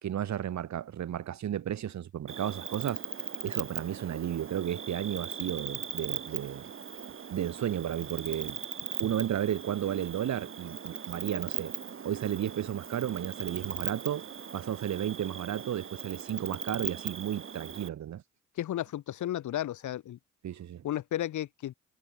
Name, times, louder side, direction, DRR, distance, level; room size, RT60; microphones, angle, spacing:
voice 1, 0.0-3.0 3.4-6.6 7.3-8.6 9.0-11.7 12.0-18.2 20.4-20.8, right 10 dB, 65° right, 4.0 m, -33 dB
Cricket, 2.3-17.9, right 7 dB, 45° right, 2.8 m, -39 dB
voice 2, 18.6-20.2 20.8-21.7, left 12 dB, 75° left, 4.7 m, -33 dB
cardioid pair, 90°, 30 cm